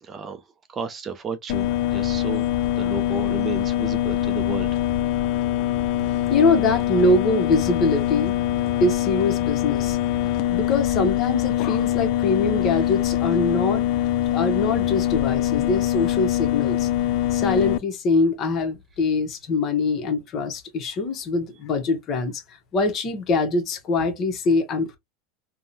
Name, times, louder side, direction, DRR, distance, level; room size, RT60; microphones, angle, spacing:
voice 1, 0.0-0.4 0.7-2.5 2.8-4.8, right 5 dB, 25° right, 0.4 m, -32 dB
sound 1, 1.5-17.8, left 13 dB, 60° left, 0.3 m, -23 dB
voice 2, 6.3-8.4 8.8-10.0 10.4-13.8 14.3-16.9 17.3-22.4 22.7-25.0, left 3 dB, 40° left, 0.8 m, -23 dB
3.6 x 2.0 x 2.6 m
supercardioid pair, 130°, 0 cm